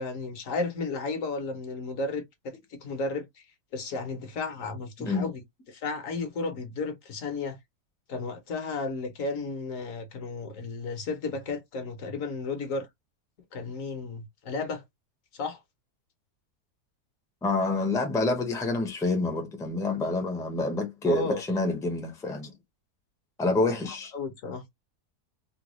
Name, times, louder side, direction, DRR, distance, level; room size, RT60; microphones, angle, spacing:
voice 1, 0.0-3.4 3.7-5.4 5.7-7.6 8.1-12.9 13.5-14.8 15.3-15.6 21.0-21.4 23.9-24.7, left 3 dB, 60° left, 1.2 m, -33 dB
voice 2, 17.4-22.5 23.4-24.1, left 2 dB, 5° left, 0.5 m, -27 dB
3.8 x 2.2 x 2.9 m
omnidirectional pair, 1.6 m